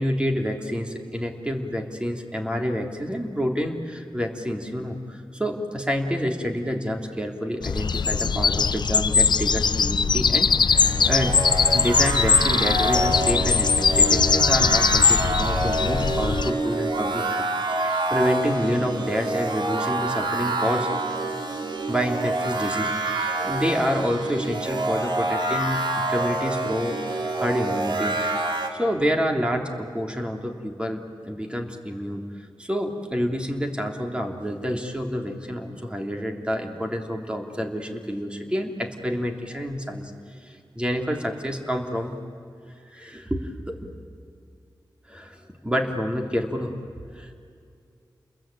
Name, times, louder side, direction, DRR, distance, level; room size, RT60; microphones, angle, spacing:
voice 1, 0.0-11.4 11.7-20.9 21.9-28.2 28.7-32.3 32.6-40.1 40.4-42.1 42.9-43.9 45.1-46.7 47.1-47.3, equal, 10° right, 3 dB, 3.1 m, -28 dB
sound 1, 7.6-16.5, left 5 dB, 65° left, 0.6 m, -21 dB
sound 2, 10.7-28.7, right 2 dB, 70° right, 2.7 m, -27 dB
30.0 x 21.5 x 9.1 m, 2.4 s
wide cardioid pair, 90°, 8 cm